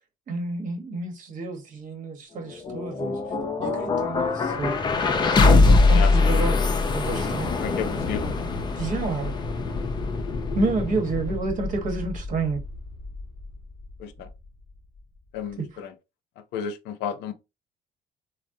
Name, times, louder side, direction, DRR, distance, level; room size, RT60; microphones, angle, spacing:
voice 1, 0.3-3.2 3.6-4.8 5.4-6.6 6.9-7.5 8.8-9.4 10.5-12.6 15.6-15.7, right 3 dB, 50° right, 1.0 m, -29 dB
sound 1, 2.4-14.4, left 3 dB, 25° left, 0.5 m, -23 dB
voice 2, 7.6-8.4 14.0-14.3 15.3-15.9 16.5-17.3, left 7 dB, 85° left, 0.6 m, -32 dB
3.4 x 2.0 x 2.6 m
cardioid pair, 110°, 17 cm